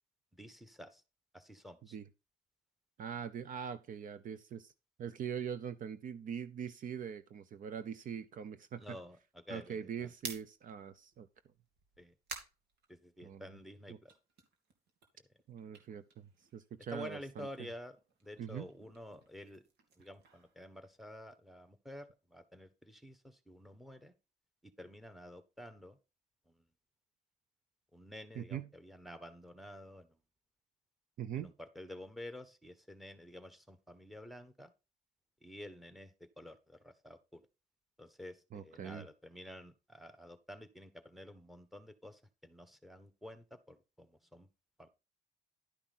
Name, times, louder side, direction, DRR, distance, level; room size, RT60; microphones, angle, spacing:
voice 1, 0.3-1.0 1.3-2.0 8.8-10.1 12.0-12.1 12.9-14.1 16.9-18.0 18.2-19.6 20.0-24.1 24.6-26.0 26.5-26.6 27.9-30.2 31.3-34.7 35.4-37.4 38.0-44.5 44.8-44.9, left 1 dB, ahead, 1.3 m, -50 dB
voice 2, 3.0-4.7 5.0-9.0 9.5-11.3 13.2-13.5 13.9-14.0 15.5-17.5 18.4-18.7 28.4-28.7 31.2-31.5 38.5-39.1, right 8 dB, 50° right, 0.8 m, -42 dB
sound 1, 10.2-13.6 14.0-16.9 17.2-21.3, right 5 dB, 75° right, 2.5 m, -52 dB
11.5 x 5.7 x 4.2 m
cardioid pair, 110°, 17 cm